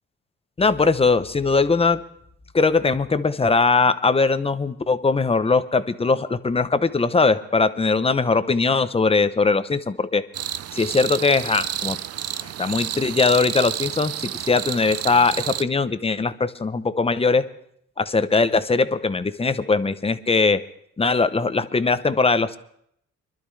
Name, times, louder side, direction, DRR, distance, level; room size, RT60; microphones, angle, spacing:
voice 1, 0.6-2.0 2.5-10.2 10.7-12.0 12.6-14.1 14.5-17.5 18.0-20.6 21.0-22.6, left 4 dB, 20° left, 12 dB, 0.7 m, -20 dB
sound 1, 10.3-15.6, right 11 dB, 55° right, 0.5 m, -30 dB
24.5 x 12.0 x 3.3 m, 0.70 s
cardioid pair, 90°, 30 cm